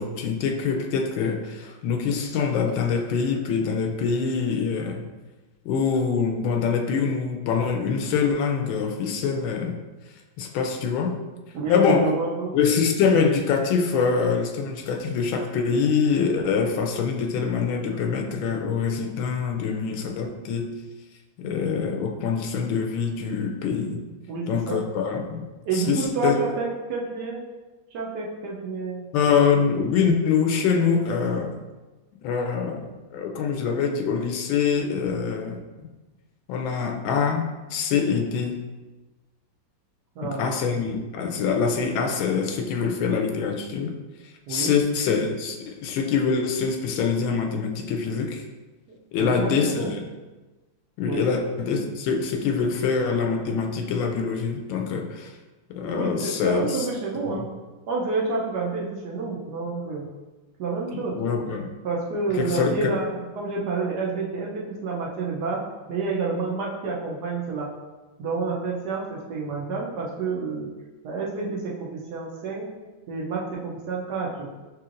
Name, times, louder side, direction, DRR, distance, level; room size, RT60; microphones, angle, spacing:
voice 1, 0.0-5.0 5.6-9.8 10.4-11.1 11.7-12.1 12.5-20.7 21.4-24.0 24.5-25.5 25.7-26.4 29.1-31.5 32.2-35.9 36.5-38.6 40.2-44.0 44.5-48.4 49.1-50.0 51.0-55.4 55.7-56.9 57.3-57.5 61.1-61.7 62.3-62.9, left 6 dB, 85° left, 4 dB, 1.3 m, -24 dB
voice 2, 11.5-12.5 24.3-24.8 25.7-27.4 27.9-29.1 40.2-40.5 44.5-44.7 48.9-49.9 51.0-51.3 55.9-57.5 57.9-60.1 60.6-61.2 61.8-65.6 65.9-67.7 68.2-70.7 71.0-72.7 73.1-74.5, right 4 dB, 70° right, -3 dB, 1.1 m, -29 dB
5.6 x 3.1 x 2.5 m, 1.2 s
omnidirectional pair, 2.1 m